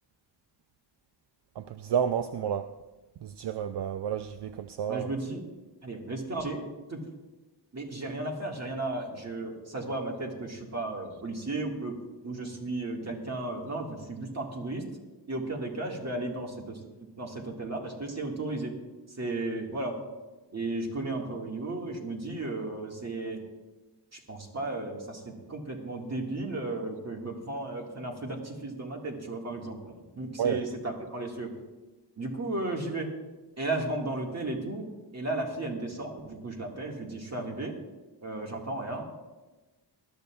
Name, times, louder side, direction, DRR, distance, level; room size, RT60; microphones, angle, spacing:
voice 1, 1.6-2.7 3.2-5.1 30.4-30.6, right 8 dB, 70° right, 10 dB, 0.5 m, -30 dB
voice 2, 4.9-5.5 5.8-7.0 7.7-12.0 12.2-14.8 15.3-16.8 17.2-18.7 19.2-20.0 20.5-23.4 24.1-31.5 32.2-33.1 33.6-34.9 35.1-37.8 38.2-39.0, right 2 dB, 35° right, 0 dB, 1.9 m, -34 dB
20.0 x 12.0 x 2.4 m, 1.2 s
wide cardioid pair, 135°, 43 cm